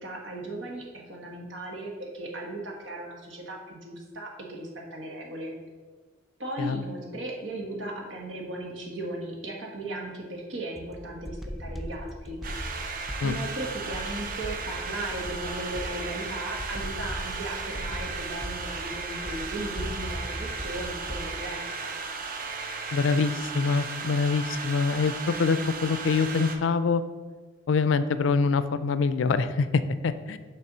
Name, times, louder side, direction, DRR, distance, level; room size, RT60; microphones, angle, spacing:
voice 1, 0.0-5.5 6.4-12.4 13.2-22.0, right 1 dB, 90° right, 0 dB, 1.5 m, -37 dB
sound 1, 10.8-21.4, equal, ahead, 0.4 m, -39 dB
sound 2, 12.4-26.6, right 4 dB, 50° right, 0.6 m, -36 dB
voice 2, 22.9-27.0 27.7-30.4, left 4 dB, 85° left, 13 dB, 0.4 m, -25 dB
6.8 x 3.3 x 6.1 m, 1.4 s
head